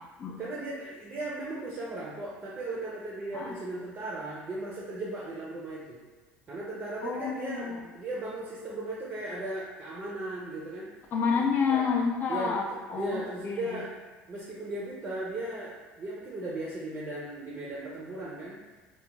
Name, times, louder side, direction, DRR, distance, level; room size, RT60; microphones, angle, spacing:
voice 1, 0.4-6.0 6.5-10.9 11.7-11.9 12.3-13.9 14.3-18.6, right 2 dB, 30° right, -5 dB, 0.5 m, -37 dB
voice 2, 7.0-7.8 11.1-13.8, left 5 dB, 45° left, 1 dB, 0.4 m, -29 dB
2.3 x 2.1 x 3.1 m, 1.2 s
supercardioid pair, 110°, 5 cm